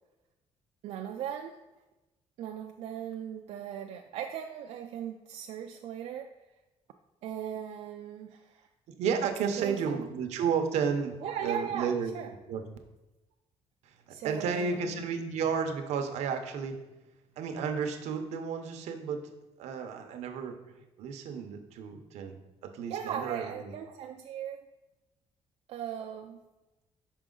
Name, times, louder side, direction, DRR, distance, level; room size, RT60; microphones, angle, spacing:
voice 1, 0.8-1.6 2.4-6.3 7.2-8.7 9.6-10.1 11.2-12.3 14.1-15.0 22.9-24.7 25.7-26.4, right 9 dB, 65° right, 3 dB, 0.4 m, -38 dB
voice 2, 9.0-12.1 12.5-12.6 13.8-16.8 17.4-19.3 19.6-20.6 21.0-23.7, right 6 dB, 80° right, 6 dB, 0.7 m, -32 dB
6.0 x 4.5 x 3.8 m, 1.0 s
cardioid pair, 170°, 11 cm